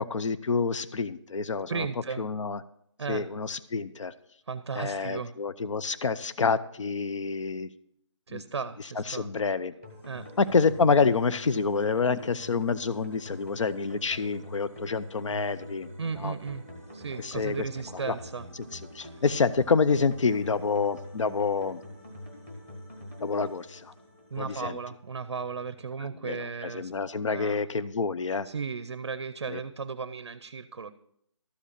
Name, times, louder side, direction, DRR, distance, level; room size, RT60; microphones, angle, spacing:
voice 1, 0.0-1.9 2.2-2.6 3.1-4.1 4.7-7.7 8.3-8.4 9.0-9.7 10.4-15.9 16.2-16.3 17.2-17.7 18.0-18.2 18.7-21.8 23.2-23.9 24.4-24.8 26.2-28.5 29.5-29.6, left 5 dB, 75° left, 15 dB, 0.6 m, -27 dB
voice 2, 1.7-2.2 3.0-3.3 4.5-5.3 8.3-9.3 10.0-10.3 16.0-16.6 16.9-18.5 19.1-19.2 24.3-26.9 27.3-27.6 28.4-30.9, right 5 dB, 55° right, 14 dB, 0.5 m, -35 dB
sound 1, 9.8-24.9, left 1 dB, 10° left, 1.2 m, -46 dB
13.0 x 5.1 x 6.6 m, 0.73 s
hypercardioid pair, 175°, 16 cm